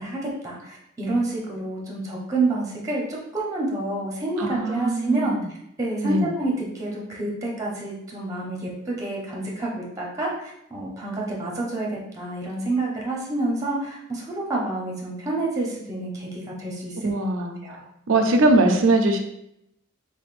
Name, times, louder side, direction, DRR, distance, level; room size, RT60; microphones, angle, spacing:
voice 1, 0.0-5.4 5.8-11.9 12.1-17.1 17.6-17.8, right 2 dB, 15° right, -3 dB, 0.7 m, -28 dB
voice 2, 4.4-5.4 6.0-6.3 17.0-17.6 18.1-19.2, right 2 dB, 90° right, 4 dB, 0.5 m, -21 dB
3.7 x 3.5 x 2.4 m, 0.79 s
head